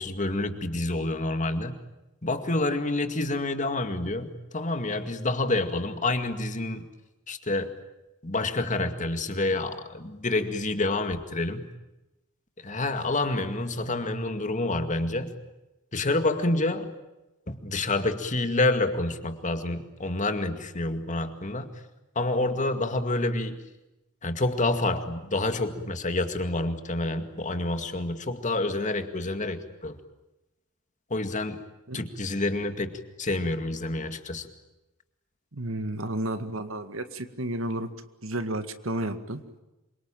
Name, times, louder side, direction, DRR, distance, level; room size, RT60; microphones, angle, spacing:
voice 1, 0.0-1.8 2.2-6.9 7.3-7.7 8.2-11.7 12.6-15.4 15.9-16.9 17.5-21.7 22.2-23.6 24.2-30.0 31.1-31.6 31.9-34.5, left 2 dB, 35° left, 8 dB, 2.2 m, -28 dB
voice 2, 35.5-37.9 38.2-39.4, right 1 dB, 70° right, 9 dB, 2.0 m, -32 dB
27.0 x 24.5 x 9.0 m, 1.0 s
head